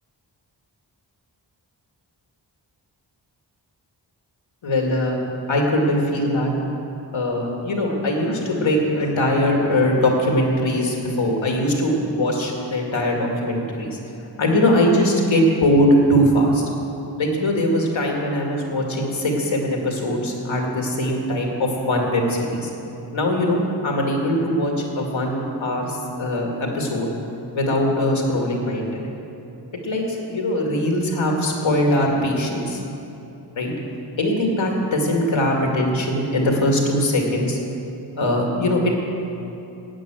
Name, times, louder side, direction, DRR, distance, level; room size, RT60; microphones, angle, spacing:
voice 1, 4.6-5.2 5.5-6.5 7.1-14.0 14.4-16.6 17.2-22.7 23.1-27.1 27.5-29.1 29.8-32.8 33.6-33.7 34.2-37.6 38.2-38.9, left 1 dB, 80° left, 0 dB, 2.1 m, -21 dB
11.5 x 9.0 x 7.6 m, 3.0 s
wide cardioid pair, 60°, 46 cm